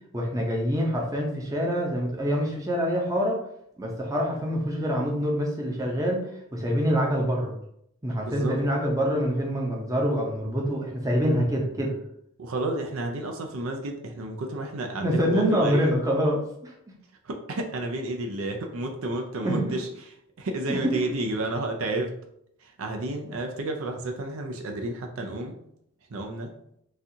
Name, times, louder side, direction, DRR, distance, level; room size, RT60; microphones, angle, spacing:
voice 1, 0.1-3.4 3.8-7.5 8.0-11.9 15.0-16.7 19.4-19.6 20.7-20.9, equal, 15° right, -1 dB, 0.6 m, -25 dB
voice 2, 8.2-8.6 12.4-15.9 17.2-19.9 20.4-22.1 22.6-25.5 26.1-26.5, right 2 dB, 80° right, 3 dB, 0.5 m, -31 dB
4.0 x 2.4 x 2.7 m, 0.73 s
head